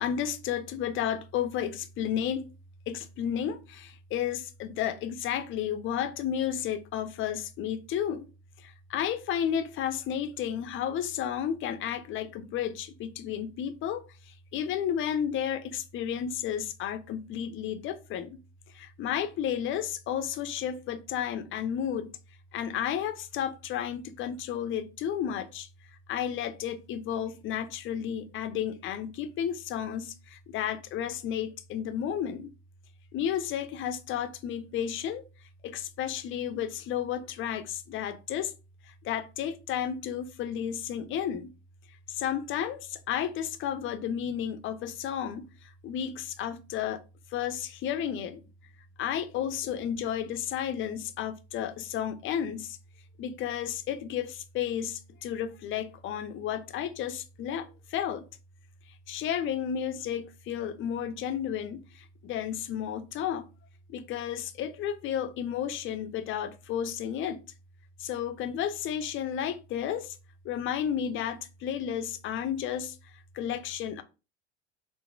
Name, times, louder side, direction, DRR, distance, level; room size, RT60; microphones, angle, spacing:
voice 1, 0.0-2.5 2.9-8.3 8.6-18.4 18.7-22.1 22.5-25.7 26.1-32.5 33.1-35.2 35.6-38.5 38.9-41.5 42.1-47.0 47.3-48.4 49.0-52.8 53.2-58.3 59.1-63.5 63.9-67.4 68.0-70.2 70.4-73.0 73.3-74.0, left 9 dB, 35° left, 0.4 m, -32 dB
3.6 x 2.5 x 2.2 m
hypercardioid pair, 75°, 35 cm